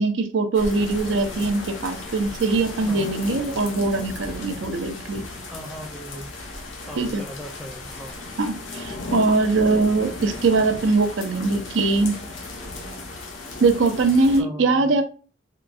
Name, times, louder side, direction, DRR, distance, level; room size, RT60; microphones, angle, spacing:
voice 1, 0.0-5.2 7.0-7.2 8.4-12.2 13.6-15.0, right 3 dB, 70° right, 7 dB, 0.5 m, -21 dB
sound 1, 0.5-14.4, left 2 dB, 75° left, 0.7 m, -35 dB
voice 2, 5.5-6.3 6.8-8.2 14.4-14.9, equal, ahead, 2 dB, 0.5 m, -38 dB
3.7 x 2.3 x 2.4 m, 0.35 s
head